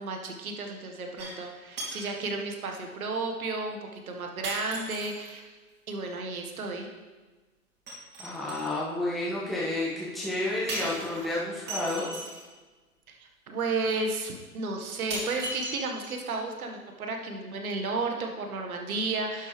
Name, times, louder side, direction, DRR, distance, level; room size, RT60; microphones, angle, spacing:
voice 1, 0.0-5.4 5.9-6.9 13.1-13.2 13.5-19.5, right 3 dB, 70° right, 3 dB, 1.7 m, -33 dB
sound 1, 1.2-1.5 1.8-2.2 3.1-3.2 4.4-5.3 7.9-8.8 10.7-12.5 13.6-13.7 14.3-14.4 15.1-16.4 16.7-16.8, right 2 dB, 25° right, 2.9 m, -37 dB
voice 2, 8.2-12.1, left 1 dB, ahead, -8 dB, 1.7 m, -31 dB
11.5 x 6.5 x 3.3 m, 1.3 s
hypercardioid pair, 120°, 45 cm